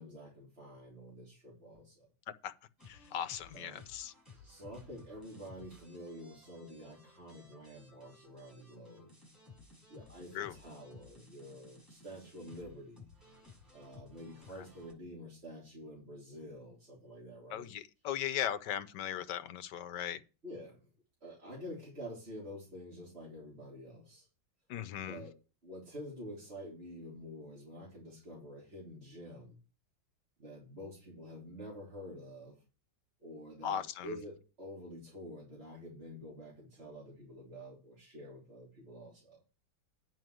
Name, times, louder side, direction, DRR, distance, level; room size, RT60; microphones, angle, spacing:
voice 1, 0.0-2.1 3.5-3.8 4.3-9.1 9.9-13.1 13.7-17.7 20.4-20.9 21.2-24.3 25.0-25.3 25.6-29.6 30.4-32.6 33.2-39.4, equal, 35° right, 3.4 m, -48 dB
voice 2, 2.8-4.1 10.3-10.6 14.5-14.7 17.5-20.2 24.7-25.2 33.6-34.2, left 10 dB, 75° left, 1.4 m, -38 dB
sound 1, 2.8-14.9, left 3 dB, 10° left, 6.6 m, -58 dB
9.4 x 5.1 x 7.6 m
omnidirectional pair, 1.9 m